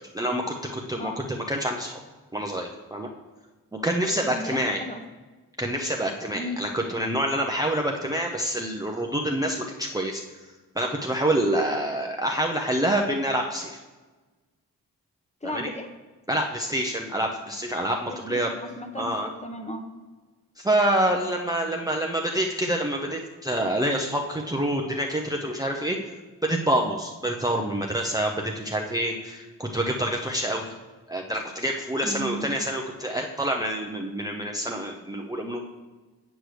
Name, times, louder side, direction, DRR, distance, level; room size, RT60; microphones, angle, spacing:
voice 1, 0.1-2.0 2.3-3.1 3.8-4.8 5.6-10.2 10.7-13.8 15.4-15.7 16.3-18.5 19.0-19.3 20.6-26.0 26.4-30.7 31.1-35.6, right 1 dB, 10° right, 1 dB, 0.7 m, -27 dB
voice 2, 4.2-5.0 6.3-6.6 15.4-15.9 18.1-19.8 32.0-32.5, equal, 15° left, 5 dB, 1.1 m, -35 dB
7.9 x 7.6 x 3.3 m, 1.3 s
supercardioid pair, 50°, 39 cm